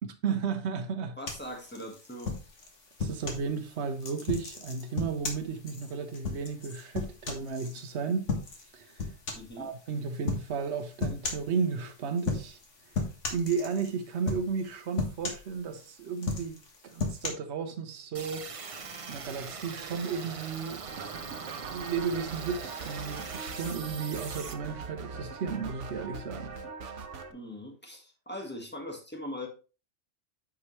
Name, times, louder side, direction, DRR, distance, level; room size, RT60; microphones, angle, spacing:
voice 1, 0.0-1.2 3.0-8.3 8.7-9.1 9.6-12.6 13.3-18.5 19.1-20.9 21.6-26.5, right 5 dB, 70° right, 1.1 m, -34 dB
voice 2, 1.2-2.3 9.3-9.7 27.3-29.5, left 1 dB, 10° left, 1.5 m, -41 dB
sound 1, 1.3-3.5 4.0-7.8 8.3-8.7 9.0-9.6 10.3-10.5 11.0-11.5 12.2-12.7 12.9-13.9 14.3-14.7 15.0-15.8 16.2-17.3, left 4 dB, 80° left, 1.8 m, -34 dB
sound 2, 18.1-24.5, right 5 dB, 35° right, 0.6 m, -42 dB
sound 3, 20.9-27.3, right 4 dB, 85° right, 1.2 m, -41 dB
9.0 x 4.9 x 3.2 m
omnidirectional pair, 1.2 m